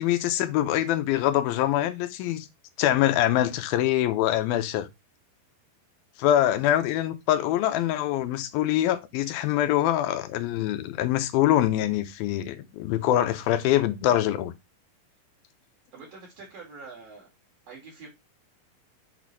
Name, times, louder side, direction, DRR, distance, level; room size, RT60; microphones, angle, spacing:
voice 1, 0.0-2.5 2.8-4.9 6.2-14.5, left 12 dB, 90° left, 2.6 m, -24 dB
voice 2, 15.9-17.3 17.7-18.1, right 4 dB, 50° right, 3.1 m, -45 dB
6.6 x 4.2 x 4.6 m
omnidirectional pair, 4.2 m